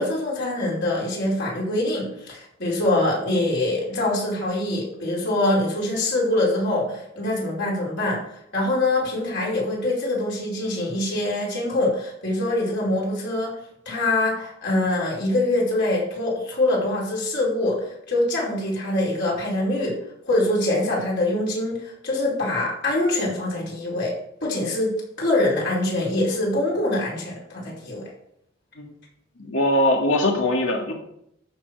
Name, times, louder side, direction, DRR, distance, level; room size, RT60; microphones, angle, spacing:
voice 1, 0.0-13.6 13.8-19.9 20.2-24.1 24.4-24.9 25.2-28.1, left 1 dB, 65° left, -4 dB, 4.9 m, -24 dB
voice 2, 29.4-30.9, left 1 dB, 90° left, 1 dB, 2.0 m, -21 dB
14.0 x 6.3 x 4.8 m, 0.75 s
head